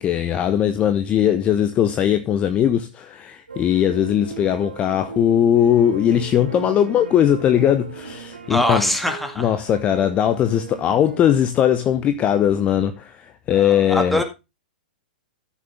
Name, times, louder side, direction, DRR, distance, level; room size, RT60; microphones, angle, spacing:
voice 1, 0.0-8.9 9.4-14.2, left 10 dB, 25° left, 0.8 m, -19 dB
sound 1, 3.5-11.4, right 5 dB, 80° right, 2.4 m, -37 dB
voice 2, 8.5-9.5 13.5-14.2, left 1 dB, ahead, 2.1 m, -23 dB
14.0 x 6.7 x 3.6 m
figure-of-eight pair, 105°, 5 cm